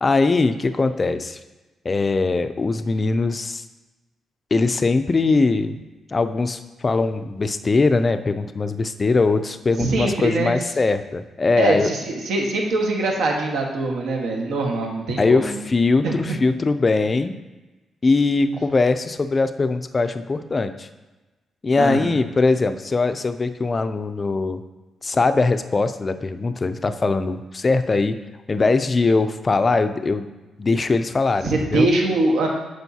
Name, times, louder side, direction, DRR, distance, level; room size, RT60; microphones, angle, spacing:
voice 1, 0.0-1.4 1.8-3.6 4.5-5.8 6.1-11.9 15.2-17.3 18.0-20.9 21.6-24.6 25.0-28.2 28.5-30.3 30.6-31.9, left 3 dB, 25° left, 10 dB, 0.3 m, -21 dB
voice 2, 9.8-10.5 11.5-15.7 16.0-16.1 21.7-22.2 31.4-32.5, right 2 dB, 85° right, 0 dB, 1.4 m, -23 dB
8.9 x 6.4 x 2.8 m, 1.1 s
wide cardioid pair, 160°, 0 cm